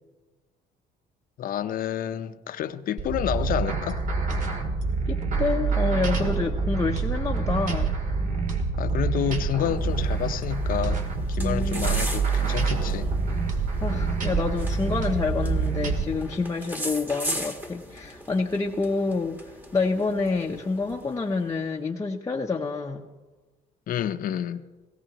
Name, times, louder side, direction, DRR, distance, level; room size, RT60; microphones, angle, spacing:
voice 1, 1.4-4.0 8.8-13.1 23.9-24.6, left 10 dB, 55° left, 0.7 m, -29 dB
sound 1, 3.0-16.0, right 4 dB, 50° right, 2.1 m, -26 dB
voice 2, 5.0-8.0 11.4-12.1 13.8-23.1, left 4 dB, 20° left, 0.8 m, -28 dB
sound 2, 9.7-21.4, equal, 10° right, 1.5 m, -39 dB
18.0 x 17.0 x 3.0 m
cardioid pair, 110°, 17 cm